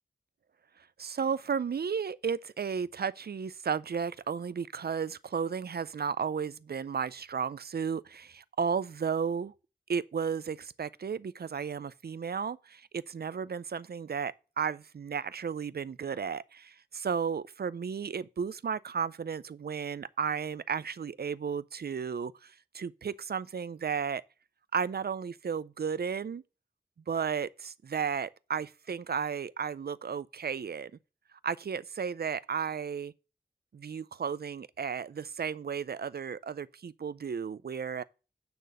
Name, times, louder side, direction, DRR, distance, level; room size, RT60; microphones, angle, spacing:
voice 1, 1.0-9.5 9.9-24.2 24.7-26.4 27.1-30.9 31.4-33.1 33.7-38.0, right 6 dB, 75° right, 0.4 m, -34 dB
9.3 x 4.0 x 6.5 m
wide cardioid pair, 60°, 16 cm